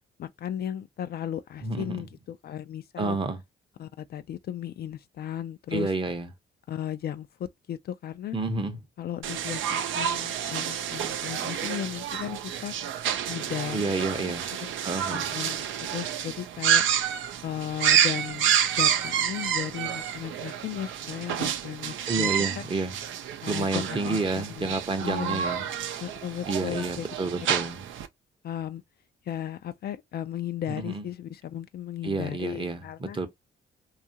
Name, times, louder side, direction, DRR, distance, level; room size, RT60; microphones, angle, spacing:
voice 1, 0.2-3.2 3.8-5.9 6.7-8.4 9.0-12.7 13.3-14.3 14.6-14.7 15.1-16.8 17.4-22.3 22.6-22.7 23.4-24.7 25.0-25.5 26.0-27.1 28.4-28.8 29.3-33.2, left 10 dB, 55° left, 0.4 m, -35 dB
voice 2, 1.6-2.0 3.0-3.4 5.7-6.3 8.3-8.8 13.7-14.5 14.8-15.3 22.1-23.0 23.5-25.7 26.5-27.8 30.7-31.1 32.0-33.3, right 3 dB, 25° right, 0.7 m, -30 dB
sound 1, 9.2-28.1, right 9 dB, 75° right, 0.5 m, -29 dB
2.7 x 2.3 x 2.7 m
cardioid pair, 90°, 20 cm